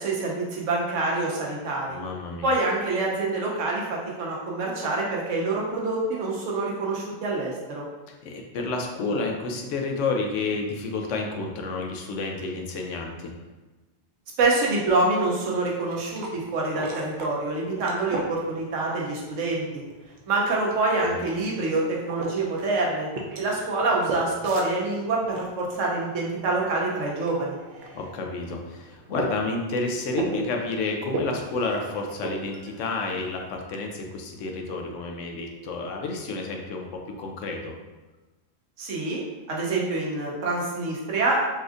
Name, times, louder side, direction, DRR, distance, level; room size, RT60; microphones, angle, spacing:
voice 1, 0.0-2.0 2.4-7.8 14.4-19.8 20.3-23.1 23.4-27.6 38.8-39.2 39.5-41.4, right 2 dB, 85° right, -3 dB, 1.1 m, -26 dB
voice 2, 1.9-2.5 8.2-13.3 21.0-21.2 27.9-37.7, left 3 dB, 80° left, 2 dB, 0.9 m, -30 dB
sound 1, 15.7-33.5, right 3 dB, 65° right, 0.7 m, -39 dB
4.1 x 2.5 x 2.5 m, 1.2 s
omnidirectional pair, 1.2 m